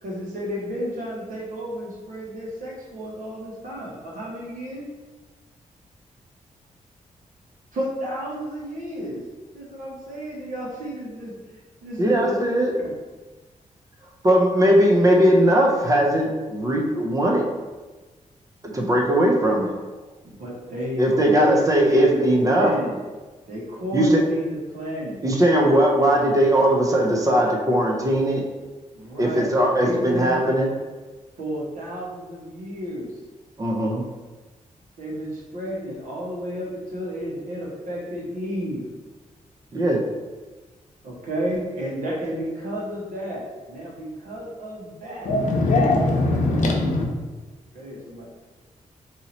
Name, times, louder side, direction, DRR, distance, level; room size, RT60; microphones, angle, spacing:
voice 1, 0.0-4.9 7.7-9.2 9.5-11.3 11.8-12.4 12.8-12.9 18.6-18.9 20.2-23.0 23.5-25.2 28.9-30.5 31.4-33.1 35.0-38.9 41.0-45.3 47.7-48.3, equal, 80° right, -5 dB, 1.2 m, -31 dB
voice 2, 12.0-12.7 14.2-17.4 18.7-19.7 21.0-22.7 23.9-24.2 25.2-28.4 29.2-30.7 33.6-34.0 39.7-40.0, right 1 dB, 25° right, -1 dB, 0.5 m, -19 dB
voice 3, 45.2-47.1, left 2 dB, 75° left, -1 dB, 0.7 m, -20 dB
2.9 x 2.7 x 4.0 m, 1.3 s
wide cardioid pair, 175°, 13 cm